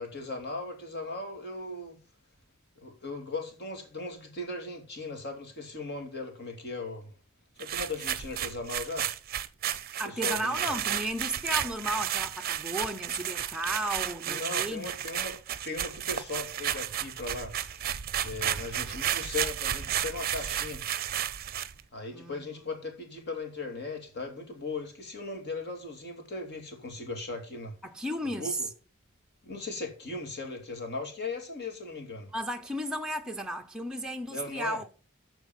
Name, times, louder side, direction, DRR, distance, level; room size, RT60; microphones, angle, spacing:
voice 1, 0.0-2.0 2.8-7.1 7.6-9.1 10.0-10.7 14.3-15.4 15.6-17.8 18.2-20.8 21.9-27.8 28.2-28.7 29.4-32.3 34.3-34.8, left 3 dB, 50° left, 2.6 m, -38 dB
sound 1, 7.6-21.8, right 10 dB, 45° right, 0.6 m, -32 dB
voice 2, 10.0-14.9 22.1-22.7 27.8-28.6 32.3-34.9, right 1 dB, 5° right, 0.7 m, -34 dB
13.0 x 4.6 x 5.6 m
head